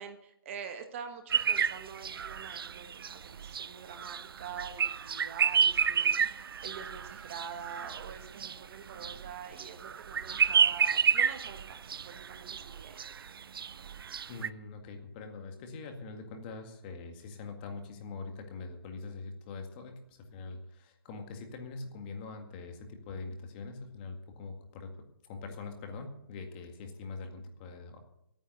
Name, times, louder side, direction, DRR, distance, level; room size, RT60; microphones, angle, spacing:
voice 1, 0.0-13.1, right 7 dB, 35° right, 7 dB, 1.4 m, -45 dB
sound 1, 1.3-14.5, right 7 dB, 80° right, 0.6 m, -30 dB
voice 2, 14.3-24.9 25.2-28.0, left 4 dB, 25° left, 5 dB, 1.9 m, -43 dB
13.5 x 9.2 x 7.8 m, 0.76 s
hypercardioid pair, 165°, 12 cm